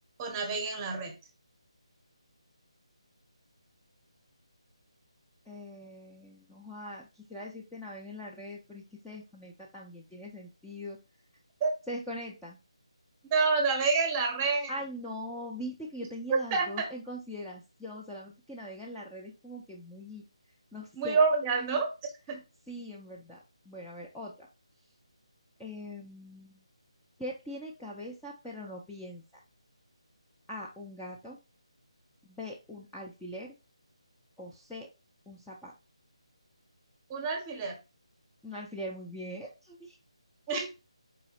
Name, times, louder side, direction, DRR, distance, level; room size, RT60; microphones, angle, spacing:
voice 1, 0.2-1.1 11.6-11.7 13.3-14.7 16.3-16.9 21.0-21.9 22.3-22.4 37.1-37.8 40.5-40.7, right 4 dB, 15° right, 3 dB, 0.8 m, -28 dB
voice 2, 5.5-11.0 11.9-12.6 14.7-20.2 20.7-21.2 22.7-23.4 23.7-24.5 25.6-26.6 27.2-29.2 30.5-31.4 32.2-33.5 34.4-34.9 35.3-35.7 38.4-40.0, left 1 dB, 5° left, -6 dB, 0.4 m, -42 dB
4.0 x 3.0 x 2.9 m, 0.28 s
figure-of-eight pair, 165°, 3 cm